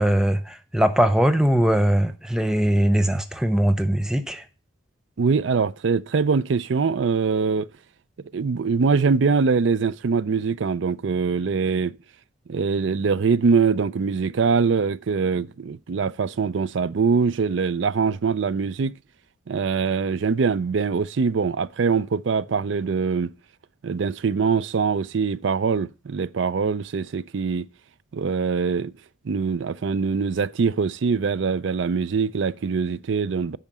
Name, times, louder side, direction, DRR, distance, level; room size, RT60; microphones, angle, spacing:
voice 1, 0.0-4.4, right 1 dB, 5° right, 0.7 m, -21 dB
voice 2, 5.2-7.7 8.3-11.9 12.5-18.9 19.5-23.3 23.8-27.7 28.1-28.9 29.2-33.6, right 5 dB, 70° right, 0.4 m, -23 dB
8.9 x 5.6 x 6.1 m
head